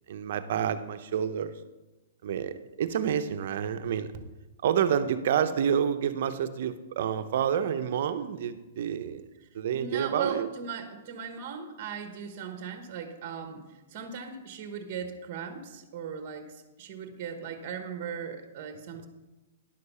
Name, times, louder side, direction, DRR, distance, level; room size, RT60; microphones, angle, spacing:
voice 1, 0.1-1.5 2.2-4.1 4.6-9.2 9.5-10.5, right 8 dB, 55° right, 10 dB, 0.8 m, -28 dB
voice 2, 9.7-19.1, right 6 dB, 35° right, 7 dB, 1.2 m, -38 dB
10.5 x 6.7 x 5.5 m, 1.1 s
hypercardioid pair, 155°, 0 cm